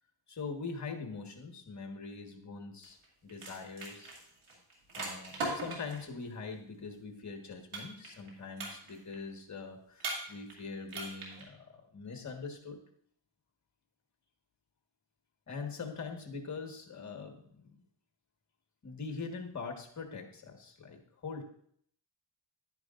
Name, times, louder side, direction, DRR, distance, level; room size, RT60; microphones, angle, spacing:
voice 1, 0.3-3.0 3.2-4.1 4.9-12.8 15.5-17.7 18.8-21.4, left 4 dB, 35° left, 3 dB, 1.6 m, -43 dB
sound 1, 2.8-3.0 3.3-6.1 7.7-8.3 8.6-9.1 10.0-10.6 10.9-11.4, right 2 dB, 85° right, 2.8 m, -39 dB
10.0 x 9.7 x 2.5 m, 0.64 s
cardioid pair, 105°, 49 cm